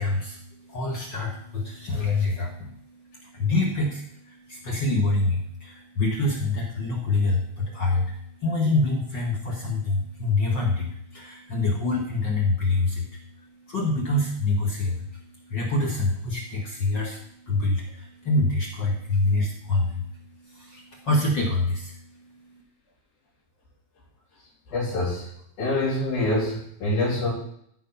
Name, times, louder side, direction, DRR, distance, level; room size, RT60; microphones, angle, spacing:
voice 1, 0.0-22.6, left 2 dB, 50° left, -1 dB, 1.4 m, -26 dB
voice 2, 24.7-25.3 25.6-27.3, left 2 dB, 80° left, -9 dB, 5.0 m, -25 dB
14.5 x 5.0 x 5.6 m, 0.69 s
omnidirectional pair, 4.0 m